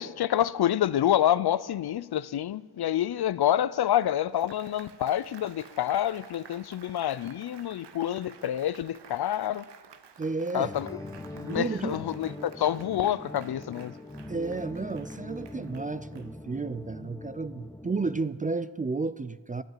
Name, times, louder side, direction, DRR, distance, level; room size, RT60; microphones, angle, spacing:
voice 1, 0.0-9.7 10.5-10.9 11.4-14.0, left 11 dB, 60° left, 0.5 m, -27 dB
Applause, 4.0-16.7, right 7 dB, 70° right, 0.9 m, -53 dB
voice 2, 10.2-10.7 11.4-12.0 14.3-19.6, right 3 dB, 20° right, 0.3 m, -32 dB
sound 1, 10.7-18.2, left 1 dB, 10° left, 0.8 m, -42 dB
10.5 x 7.8 x 9.0 m
cardioid pair, 45°, 44 cm